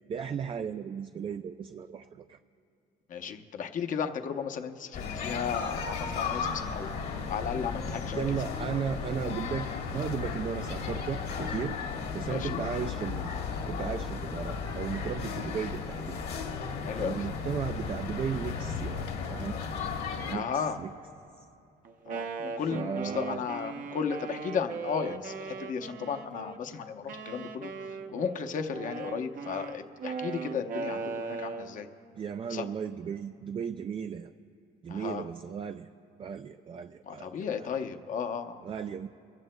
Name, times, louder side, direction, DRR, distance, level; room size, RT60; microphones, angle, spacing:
voice 1, 0.1-2.4 8.1-11.8 12.1-13.3 13.7-16.2 16.9-19.6 20.3-20.9 22.7-23.4 32.1-34.3 34.8-35.9 36.2-37.7 38.6-39.1, right 7 dB, 30° right, 8 dB, 0.4 m, -35 dB
voice 2, 3.1-6.9 7.3-8.2 12.3-12.6 16.8-17.2 20.3-20.8 22.1-27.7 28.1-31.9 32.5-32.7 34.9-35.2 37.1-38.6, left 6 dB, 50° left, 6 dB, 0.8 m, -34 dB
sound 1, 4.9-20.3, left 5 dB, 70° left, 1.8 m, -35 dB
Wind instrument woodwind instrument, 21.8-26.6 27.1-31.8, right 5 dB, 55° right, 0.8 m, -38 dB
24.0 x 15.0 x 2.2 m, 2.7 s
cardioid pair, 110°, 17 cm